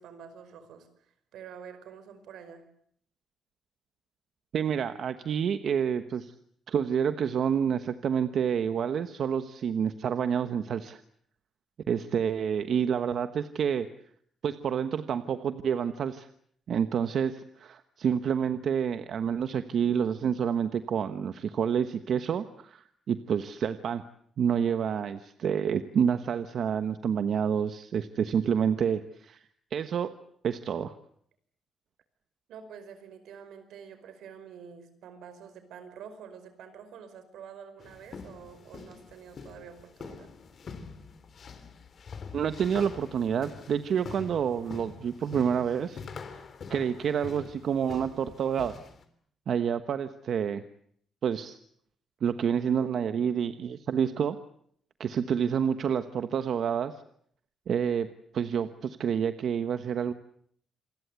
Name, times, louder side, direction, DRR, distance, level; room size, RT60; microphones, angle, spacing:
voice 1, 0.0-2.7 32.5-40.3, right 7 dB, 85° right, 11 dB, 5.1 m, -47 dB
voice 2, 4.5-6.3 6.7-11.0 11.9-13.9 14.4-16.3 16.7-24.0 24.4-29.4 29.7-30.1 30.4-30.9 42.3-46.0 46.7-48.8 49.5-50.6 51.2-51.6 52.2-54.4 55.0-56.9 57.7-58.1 58.3-60.1, right 7 dB, 60° right, 10 dB, 1.1 m, -28 dB
sound 1, 37.8-49.0, left 5 dB, 45° left, 3.5 m, -45 dB
28.0 x 21.5 x 8.2 m, 0.66 s
cardioid pair, 120°, 0 cm